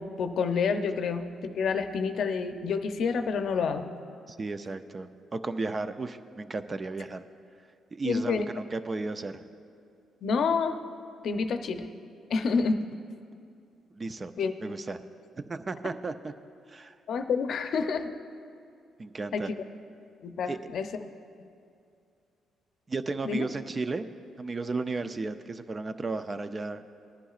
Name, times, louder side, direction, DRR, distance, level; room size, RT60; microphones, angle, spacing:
voice 1, 0.0-3.9 8.0-8.5 10.2-10.8 11.2-11.9 12.3-12.9 14.4-14.5 17.1-18.1 19.3-19.5 20.2-20.9 23.2-23.5, left 5 dB, 65° left, 8 dB, 0.6 m, -28 dB
voice 2, 4.3-7.2 7.9-9.4 13.9-14.3 14.6-15.0 15.4-16.3 16.7-16.9 19.0-19.5 20.5-20.6 22.9-24.1 24.4-26.8, right 3 dB, 30° right, 10 dB, 0.5 m, -34 dB
18.5 x 11.5 x 2.4 m, 2.4 s
cardioid pair, 90°, 0 cm